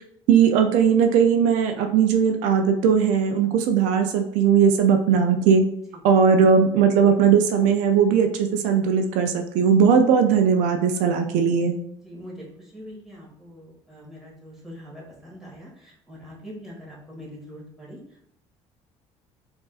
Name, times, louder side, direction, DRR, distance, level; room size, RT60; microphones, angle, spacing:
voice 1, 0.3-5.6 6.0-11.8, right 7 dB, 80° right, 5 dB, 0.4 m, -19 dB
voice 2, 12.0-18.0, equal, 5° right, -5 dB, 1.5 m, -43 dB
3.9 x 2.5 x 2.4 m, 0.74 s
supercardioid pair, 95°, 12 cm